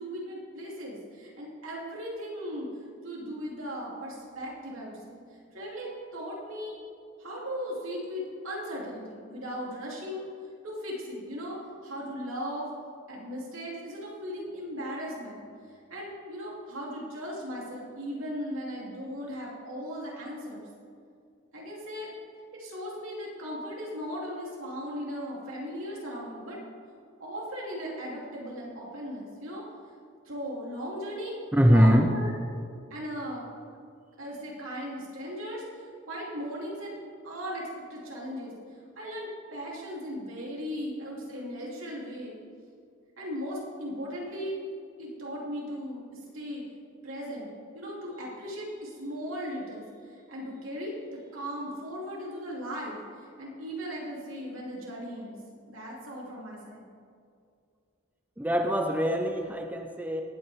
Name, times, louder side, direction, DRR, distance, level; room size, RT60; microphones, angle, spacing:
voice 1, 0.0-2.7 3.0-5.2 5.5-6.8 7.2-10.3 10.6-12.7 13.1-15.4 15.9-20.7 21.5-22.1 22.5-26.6 27.2-29.6 30.2-32.4 32.9-33.4 34.2-36.9 37.2-38.5 38.9-42.4 43.2-44.5 45.0-46.6 47.0-47.5 47.7-55.4 55.7-56.9, equal, 85° right, -4 dB, 3.2 m, -37 dB
voice 2, 31.5-32.1 58.4-60.2, equal, 10° right, 4 dB, 0.6 m, -22 dB
18.0 x 8.5 x 3.6 m, 2.4 s
head